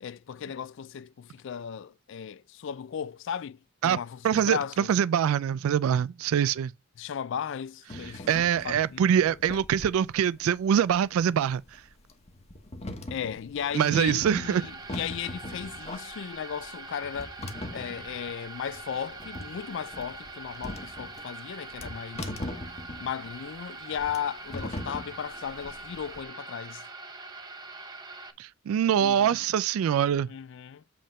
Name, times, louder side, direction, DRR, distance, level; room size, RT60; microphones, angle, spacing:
voice 1, 0.0-4.9 7.0-8.3 8.6-9.1 13.1-17.4 17.7-22.3 23.0-26.8 28.9-29.4 30.3-30.8, left 8 dB, 60° left, 0.4 m, -36 dB
voice 2, 4.2-6.7 8.3-11.6 13.7-14.6 28.4-30.3, right 9 dB, 90° right, 0.3 m, -24 dB
sound 1, 7.9-26.2, left 1 dB, 30° left, 1.0 m, -41 dB
sound 2, 14.1-28.3, right 3 dB, 20° right, 0.8 m, -43 dB
7.6 x 3.5 x 5.2 m
head